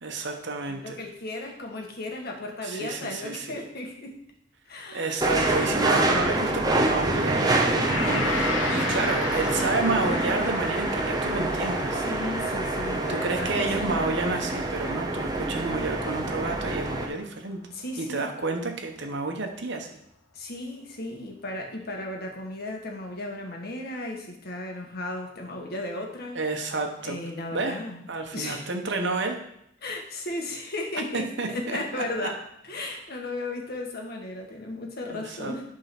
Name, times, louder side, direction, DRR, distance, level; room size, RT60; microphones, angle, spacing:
voice 1, 0.0-1.0 2.6-3.6 4.9-12.0 13.1-17.6 18.0-19.9 26.3-27.2 27.5-27.8 28.1-29.4 31.1-32.3 35.1-35.5, right 3 dB, 65° right, 4 dB, 1.1 m, -30 dB
voice 2, 0.7-4.2 4.6-5.2 5.7-6.3 11.9-14.0 17.7-18.3 20.3-26.4 27.0-28.1 28.3-28.7 29.8-32.4 32.6-35.6, left 2 dB, 55° left, 1 dB, 1.4 m, -35 dB
sound 1, 5.2-17.1, right 2 dB, 20° right, 0.8 m, -26 dB
Gong, 7.8-17.0, left 3 dB, 85° left, 1.2 m, -35 dB
8.7 x 3.8 x 6.0 m, 0.75 s
head